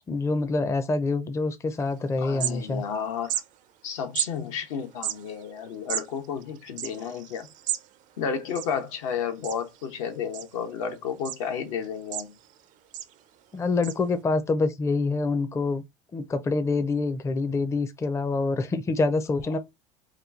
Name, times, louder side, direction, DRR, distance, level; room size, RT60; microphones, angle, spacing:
voice 1, 0.1-2.8 13.5-15.8 16.1-19.6, left 3 dB, 15° left, 0.4 m, -26 dB
sound 1, 1.8-1.9 2.2-3.0 3.2-3.5 4.2-4.3 4.9-7.9 8.2-8.3 8.5-9.1 9.4-9.9 10.3-10.8 11.2-11.4 11.8-12.6 12.9-13.1 13.8-13.9, right 13 dB, 50° right, 0.4 m, -32 dB
voice 2, 2.2-3.3 3.8-7.5 8.2-12.4, left 7 dB, 80° left, 0.9 m, -32 dB
3.0 x 2.3 x 3.5 m
supercardioid pair, 100°, 17 cm